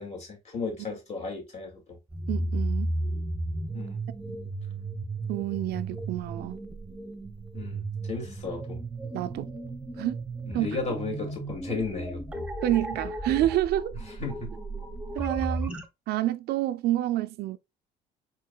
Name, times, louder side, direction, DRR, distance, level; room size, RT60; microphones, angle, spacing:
voice 1, 0.0-2.0 3.7-4.0 7.5-8.8 10.5-12.5 14.2-14.5, left 3 dB, 40° left, 2.4 m, -34 dB
sound 1, 2.1-15.8, right 2 dB, 5° right, 0.9 m, -34 dB
voice 2, 2.3-2.9 5.3-6.6 9.1-9.5 10.0-10.2 10.5-10.7 12.6-14.0 15.2-15.8 16.1-17.6, right 14 dB, 75° right, 0.4 m, -28 dB
4.5 x 4.4 x 2.3 m
cardioid pair, 110°, 17 cm